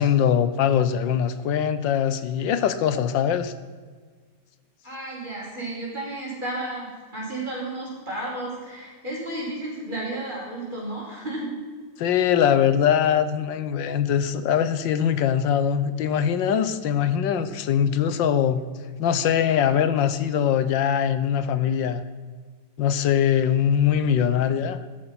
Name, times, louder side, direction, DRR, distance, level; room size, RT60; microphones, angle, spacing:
voice 1, 0.0-3.5 12.0-18.6 19.0-22.0 22.8-24.8, left 8 dB, 85° left, 12 dB, 1.6 m, -22 dB
voice 2, 4.8-11.5, right 1 dB, 25° right, -4 dB, 5.5 m, -32 dB
15.0 x 13.0 x 5.9 m, 1.5 s
omnidirectional pair, 1.9 m